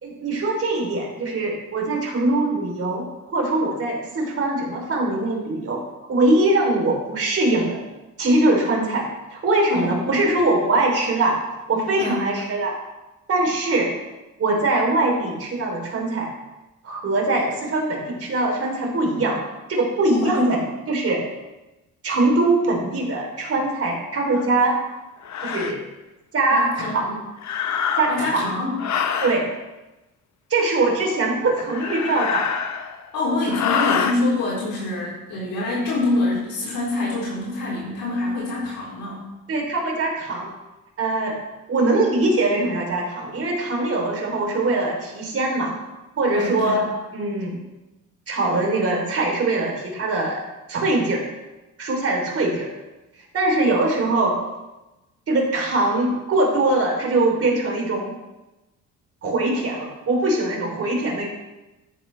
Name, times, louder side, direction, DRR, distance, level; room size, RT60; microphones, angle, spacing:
voice 1, 0.0-5.8 6.1-7.8 8.2-11.4 11.7-12.7 13.3-13.9 14.4-16.3 16.8-19.4 19.7-20.6 20.9-21.2 22.0-24.8 25.4-25.9 26.3-27.2 28.0-28.5 29.2-29.5 30.5-32.5 39.5-40.5 41.0-41.4 41.7-45.8 46.2-46.9 47.1-47.6 48.3-50.4 50.7-51.3 51.8-52.7 53.3-54.4 55.3-58.2 59.2-61.3, right 2 dB, 45° right, 0 dB, 3.7 m, -22 dB
voice 2, 12.0-12.3 20.1-20.4 26.5-27.0 28.1-28.7 33.1-39.2 46.3-46.8, left 2 dB, 80° left, -6 dB, 4.6 m, -25 dB
sound 1, 24.3-24.5 25.2-25.8 27.4-28.3 28.8-29.4 31.6-33.0 33.5-34.2, left 7 dB, 55° left, 1.1 m, -25 dB
12.5 x 10.5 x 3.4 m, 1.0 s
cardioid pair, 105°, 33 cm